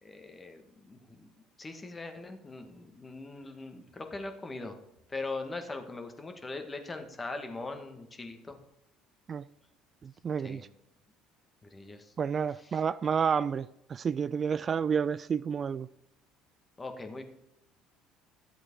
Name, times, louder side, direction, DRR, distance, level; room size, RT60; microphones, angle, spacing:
voice 1, 0.0-1.3 1.6-4.8 5.1-8.6 10.4-10.6 11.7-12.1 12.6-12.8 16.8-17.2, left 3 dB, 25° left, 2.0 m, -41 dB
voice 2, 10.0-10.7 12.2-15.9, right 7 dB, 40° right, 0.3 m, -30 dB
11.5 x 7.7 x 4.8 m
hypercardioid pair, 60°, 0 cm